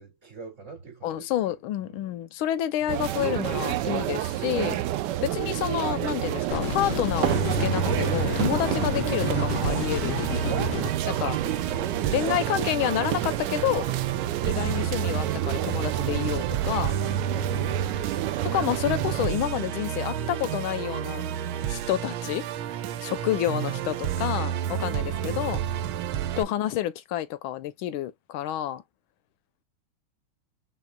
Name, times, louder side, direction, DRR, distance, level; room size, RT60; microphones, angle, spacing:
voice 1, 0.0-2.2 16.3-16.5 17.5-18.7 26.4-26.7, right 5 dB, 35° right, 2.4 m, -45 dB
voice 2, 1.0-4.8 5.2-10.2 11.0-11.4 12.1-13.9 14.4-16.9 18.4-21.2 21.7-22.5 23.0-25.6 26.4-28.8, left 12 dB, 90° left, 1.5 m, -29 dB
sound 1, 2.9-19.3, right 14 dB, 70° right, 1.0 m, -30 dB
sound 2, 6.5-10.9, left 11 dB, 75° left, 0.8 m, -31 dB
Musical instrument, 7.2-26.4, right 9 dB, 90° right, 1.5 m, -30 dB
4.7 x 3.6 x 2.2 m
omnidirectional pair, 2.2 m